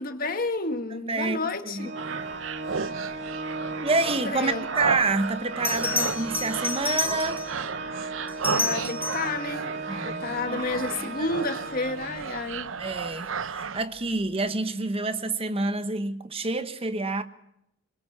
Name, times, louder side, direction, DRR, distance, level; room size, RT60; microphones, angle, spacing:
voice 1, 0.0-1.9 4.1-4.6 8.5-12.8, left 3 dB, 45° left, 1.7 m, -31 dB
voice 2, 1.1-1.4 1.7-1.9 3.8-7.5 9.9-10.6 10.9-11.3 12.8-17.2, right 3 dB, 30° right, 1.2 m, -28 dB
Organ, 1.8-12.5, right 3 dB, 60° right, 2.9 m, -36 dB
sound 1, 2.0-13.8, right 5 dB, 75° right, 0.8 m, -34 dB
Bell, 5.0-5.1 5.6-7.6 8.3-9.4 12.0-12.3, left 3 dB, 10° left, 5.4 m, -30 dB
22.0 x 21.0 x 7.4 m
head